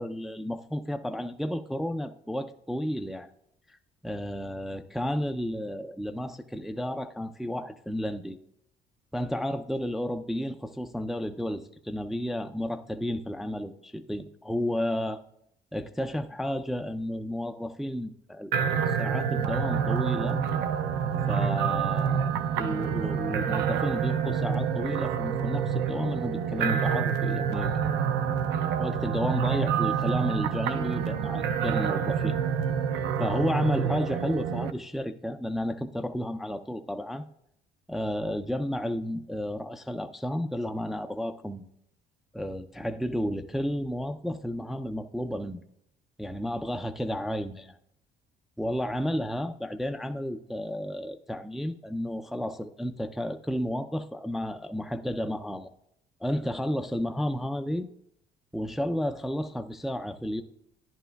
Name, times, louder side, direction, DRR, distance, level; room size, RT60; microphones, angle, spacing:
voice 1, 0.0-3.3 3.7-8.4 9.1-15.2 15.7-20.4 21.3-22.3 22.5-27.9 28.8-32.4 33.2-37.2 37.9-41.7 42.3-45.6 46.2-47.8 48.6-55.7 56.2-57.9 58.5-60.4, equal, ahead, 8 dB, 0.3 m, -32 dB
sound 1, 18.5-34.7, right 7 dB, 85° right, 0.5 m, -27 dB
11.5 x 10.5 x 2.3 m, 0.76 s
cardioid pair, 110°, 17 cm